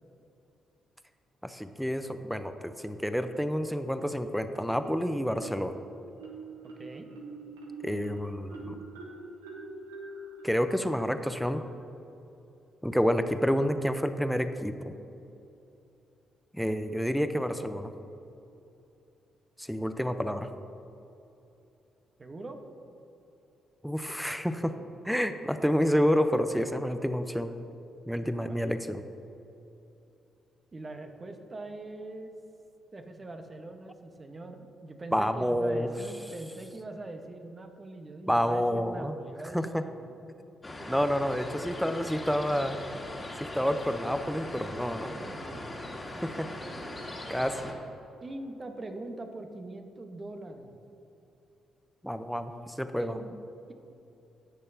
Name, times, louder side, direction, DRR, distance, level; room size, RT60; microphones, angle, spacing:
voice 1, 1.4-5.7 7.8-8.8 10.4-11.6 12.8-14.9 16.5-17.9 19.6-20.5 23.8-24.7 25.0-27.5 28.1-29.0 35.1-35.9 38.3-39.1 39.5-39.8 40.9-42.8 43.4-45.1 46.2-46.5 47.3-47.6 52.0-53.2, equal, ahead, 9 dB, 0.7 m, -29 dB
Marimba xylophone, 4.8-5.7 6.2-11.7, right 3 dB, 90° right, 1.0 m, -45 dB
voice 2, 6.6-7.1 22.2-22.6 28.5-28.6 30.7-32.3 32.9-40.1 44.0-45.7 46.6-46.7 48.2-50.8 53.0-53.3, right 2 dB, 35° right, 5 dB, 1.1 m, -43 dB
sound 1, 40.6-47.7, left 1 dB, 25° left, 1.8 m, -40 dB
17.5 x 6.6 x 2.8 m, 2.9 s
hypercardioid pair, 45°, 0 cm